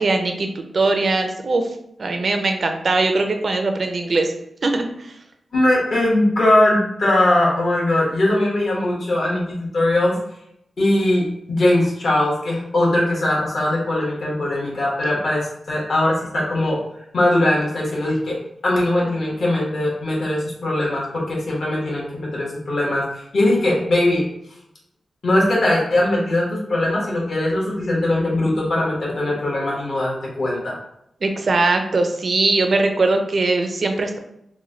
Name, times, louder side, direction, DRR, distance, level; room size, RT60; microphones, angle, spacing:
voice 1, 0.0-1.7 2.0-4.3 4.6-4.9 31.2-34.2, right 3 dB, 45° right, 5 dB, 0.4 m, -20 dB
voice 2, 5.5-10.2 10.8-16.8 17.1-18.4 18.6-24.2 25.2-30.7, left 1 dB, 60° left, -4 dB, 1.1 m, -20 dB
3.1 x 2.2 x 3.7 m, 0.79 s
wide cardioid pair, 175°, 0 cm